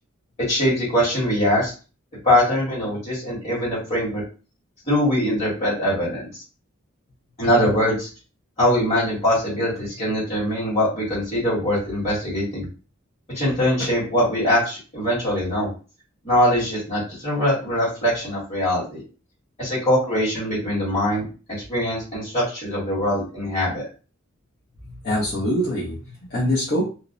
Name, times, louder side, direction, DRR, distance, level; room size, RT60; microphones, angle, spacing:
voice 1, 0.5-1.7 2.2-4.2 4.8-6.4 7.4-8.1 8.6-12.7 13.3-15.7 16.2-19.0 19.6-21.2 21.7-23.8, equal, 30° left, -9 dB, 1.4 m, -22 dB
voice 2, 24.9-26.8, equal, 50° left, -8 dB, 0.7 m, -24 dB
2.5 x 2.0 x 2.5 m, 0.35 s
head